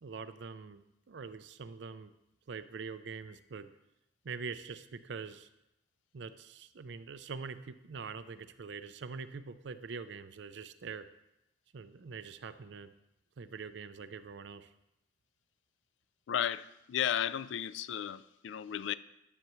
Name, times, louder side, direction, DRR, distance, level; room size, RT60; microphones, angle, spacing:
voice 1, 0.0-2.1 2.5-3.7 4.2-5.5 6.1-11.1 11.7-12.9 13.4-14.7, right 5 dB, 65° right, 0.5 m, -44 dB
voice 2, 16.3-18.9, left 10 dB, 70° left, 0.3 m, -34 dB
12.5 x 6.7 x 3.1 m
head